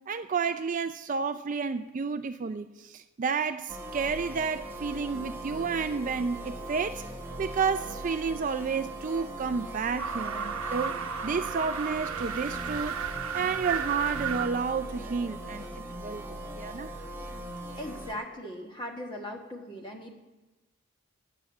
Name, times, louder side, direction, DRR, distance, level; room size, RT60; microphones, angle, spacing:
voice 1, 0.1-7.0 7.4-13.0 13.3-16.9, right 5 dB, 35° right, 10 dB, 0.3 m, -31 dB
sound 1, 3.7-18.1, right 1 dB, 10° right, 1.0 m, -40 dB
sound 2, 10.0-14.5, right 7 dB, 75° right, 0.9 m, -34 dB
voice 2, 17.8-20.1, left 1 dB, 20° left, 2 dB, 1.4 m, -39 dB
9.9 x 9.3 x 7.1 m, 1.1 s
head